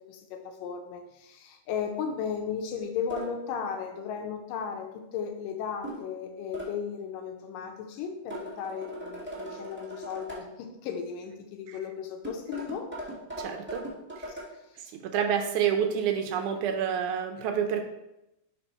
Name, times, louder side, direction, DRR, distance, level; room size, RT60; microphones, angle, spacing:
voice 1, 0.1-12.9 14.3-14.4 14.7-14.9, left 7 dB, 85° left, 4 dB, 2.3 m, -35 dB
sound 1, 3.1-3.3 5.8-6.1 6.5-6.7 8.3-10.4 12.2-14.5, right 1 dB, 5° right, 1.0 m, -39 dB
voice 2, 13.4-13.8 14.2-14.3 14.9-17.9, right 8 dB, 80° right, 5 dB, 1.9 m, -28 dB
5.4 x 5.3 x 4.3 m, 0.90 s
omnidirectional pair, 3.9 m